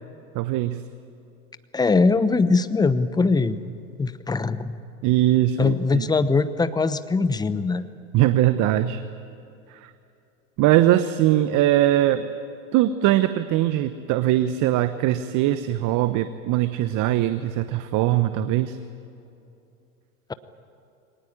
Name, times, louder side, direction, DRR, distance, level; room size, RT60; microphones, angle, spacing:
voice 1, 0.3-0.8 5.0-6.1 8.1-9.0 9.7-9.9 10.6-12.3 12.7-18.8, right 13 dB, 45° right, 11 dB, 1.0 m, -21 dB
voice 2, 1.7-3.6 4.0-4.8 5.6-7.8, left 4 dB, 10° left, 14 dB, 0.9 m, -21 dB
23.0 x 19.5 x 10.0 m, 2.7 s
hypercardioid pair, 95°, 43 cm